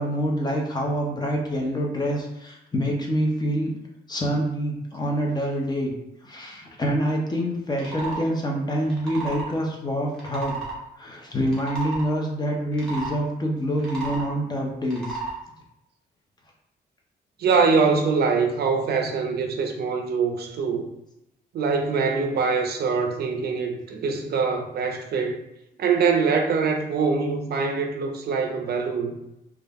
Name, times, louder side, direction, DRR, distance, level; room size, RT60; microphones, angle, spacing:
voice 1, 0.0-3.7 4.1-5.9 6.2-10.6 11.0-15.2, equal, 25° left, 0 dB, 0.5 m, -26 dB
sound 1, 7.8-8.2 8.8-9.5 10.1-10.8 11.4-12.1 12.7-13.2 13.7-14.3 14.8-15.4, right 3 dB, 5° left, 0.8 m, -33 dB
voice 2, 17.4-20.9 21.5-25.4 25.8-29.2, right 5 dB, 65° right, 4 dB, 0.4 m, -23 dB
2.3 x 2.0 x 3.3 m, 0.88 s
wide cardioid pair, 140°, 18 cm